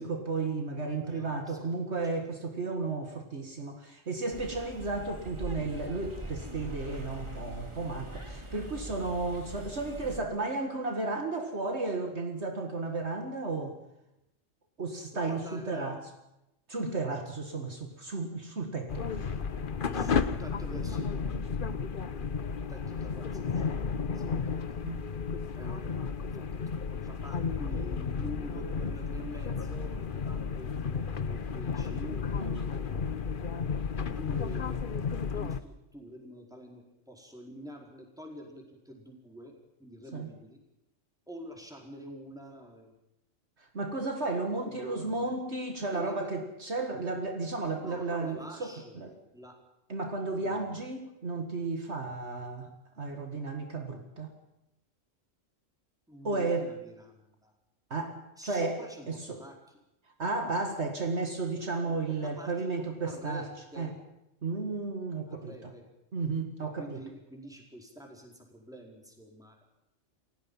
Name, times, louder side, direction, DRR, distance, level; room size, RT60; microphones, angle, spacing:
voice 1, 0.0-13.8 14.8-16.0 16.7-19.4 24.8-25.0 32.4-32.6 40.1-40.3 43.6-49.1 49.9-52.7 53.0-54.3 56.2-56.7 57.9-58.8 59.1-59.4 60.2-63.5 63.8-63.9 64.4-65.7 66.1-67.0, right 3 dB, 60° right, 4 dB, 2.2 m, -33 dB
voice 2, 0.8-1.7 2.1-2.2 15.1-15.9 19.9-22.0 22.4-24.7 25.5-33.2 34.0-34.8 35.3-39.5 39.8-40.6 41.3-42.9 44.6-45.3 45.9-46.3 47.8-49.0 49.3-49.6 50.3-50.7 56.1-57.5 58.4-59.6 61.8-63.5 63.7-64.0 65.3-65.9 66.8-69.6, equal, 5° right, 0 dB, 4.7 m, -47 dB
sound 1, 4.3-10.2, right 1 dB, 20° right, 2.6 m, -42 dB
sound 2, 18.9-35.6, left 5 dB, 45° left, 1.0 m, -33 dB
29.0 x 16.5 x 5.7 m, 0.87 s
omnidirectional pair, 1.3 m